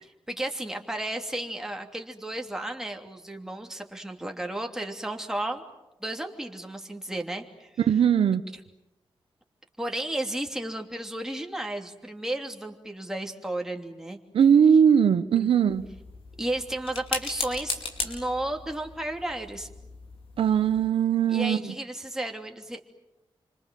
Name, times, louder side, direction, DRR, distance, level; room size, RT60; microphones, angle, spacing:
voice 1, 0.3-5.6 6.0-7.7 9.8-14.2 15.3-15.5 16.4-19.7 21.3-22.8, right 1 dB, 5° right, 2 dB, 3.0 m, -33 dB
voice 2, 7.9-8.4 14.3-15.8 20.4-21.6, right 8 dB, 90° right, 10 dB, 1.1 m, -20 dB
sound 1, 15.7-20.9, left 4 dB, 85° left, 5.0 m, -37 dB
28.5 x 26.0 x 7.7 m, 0.98 s
wide cardioid pair, 105°, 9 cm